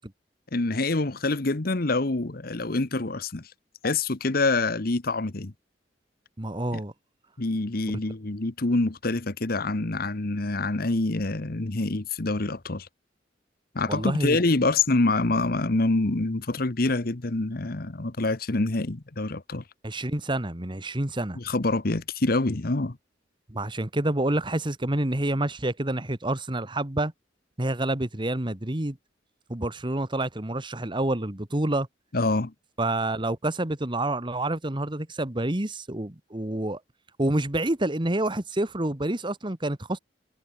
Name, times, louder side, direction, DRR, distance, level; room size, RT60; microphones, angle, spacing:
voice 1, 0.5-3.4 3.8-5.5 6.7-6.8 7.4-12.9 13.7-19.6 21.3-23.0 32.1-32.5, left 2 dB, 55° left, 1.2 m, -26 dB
voice 2, 6.4-6.9 13.9-14.4 19.8-21.4 23.5-27.1 27.6-29.0 29.5-31.9 32.8-36.8 37.2-40.0, right 1 dB, 25° right, 1.5 m, -28 dB
head